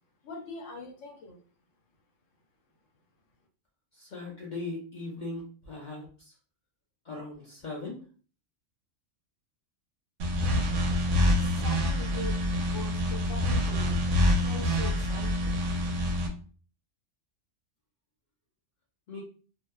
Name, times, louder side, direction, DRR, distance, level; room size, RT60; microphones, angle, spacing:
voice 1, 0.2-1.4 11.4-14.1 14.4-15.5, left 3 dB, 80° left, 2 dB, 1.0 m, -42 dB
voice 2, 3.9-6.3 7.0-8.0 19.1-19.2, left 2 dB, 50° left, -3 dB, 0.6 m, -39 dB
sound 1, 10.2-16.3, left 1 dB, 75° right, 0.9 m, -26 dB
2.6 x 2.1 x 2.2 m, 0.39 s
omnidirectional pair, 1.3 m